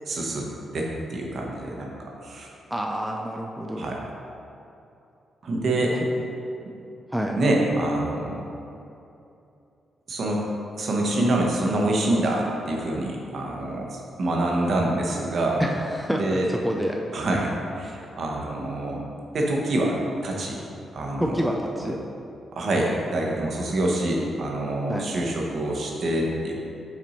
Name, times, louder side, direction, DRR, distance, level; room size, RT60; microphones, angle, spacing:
voice 1, 0.1-0.5 0.7-2.5 3.8-4.0 5.4-5.9 7.4-8.4 10.1-10.4 10.8-15.6 16.1-16.5 17.1-19.0 19.3-20.0 20.2-20.6 20.9-21.3 22.5-26.5, right 1 dB, 50° right, -1 dB, 0.9 m, -26 dB
voice 2, 2.7-4.0 7.1-7.4 15.6-17.0 21.2-22.0 24.9-25.1, equal, ahead, 0 dB, 0.3 m, -28 dB
5.8 x 4.3 x 4.2 m, 2.8 s
wide cardioid pair, 155°, 0 cm